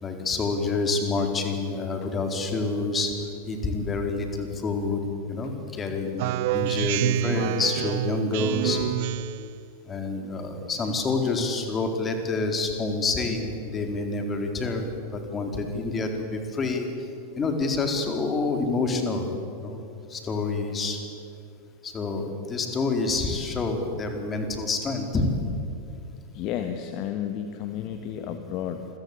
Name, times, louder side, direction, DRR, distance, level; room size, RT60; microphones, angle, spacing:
voice 1, 0.0-3.1 3.5-5.0 5.3-6.2 6.5-8.8 9.9-14.9 15.1-16.9 17.4-19.3 19.6-19.8 20.1-21.0 21.8-25.2, left 3 dB, 20° left, 4 dB, 4.3 m, -27 dB
Speech synthesizer, 6.2-9.5, right 13 dB, 50° right, 0.6 m, -27 dB
voice 2, 26.3-28.9, left 9 dB, 40° left, 7 dB, 1.7 m, -32 dB
28.5 x 23.5 x 8.7 m, 2.6 s
figure-of-eight pair, 90°, 0 cm